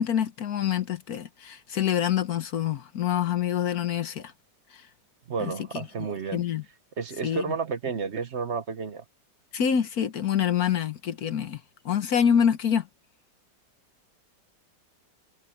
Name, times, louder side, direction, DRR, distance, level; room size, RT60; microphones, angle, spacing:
voice 1, 0.0-4.3 5.4-5.8 6.3-6.6 7.2-7.4 9.5-11.6 11.8-12.9, left 8 dB, 60° left, 1.4 m, -26 dB
voice 2, 5.3-6.4 7.0-9.0, right 5 dB, 45° right, 1.1 m, -31 dB
omnidirectional pair, 2.0 m